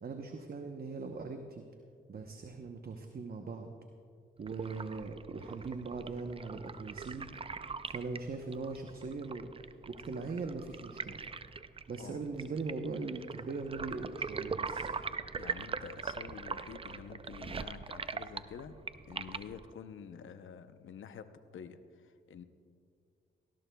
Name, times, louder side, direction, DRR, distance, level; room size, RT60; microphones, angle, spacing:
voice 1, 0.0-1.6 2.1-3.7 4.4-7.3 7.9-11.2 11.9-14.9, right 4 dB, 45° right, 4 dB, 0.9 m, -40 dB
sound 1, 4.4-19.7, right 5 dB, 25° right, 0.5 m, -42 dB
voice 2, 15.4-18.8 19.1-22.4, left 7 dB, 70° left, 10 dB, 0.8 m, -48 dB
18.5 x 17.0 x 2.3 m, 2.3 s
cardioid pair, 60°, 21 cm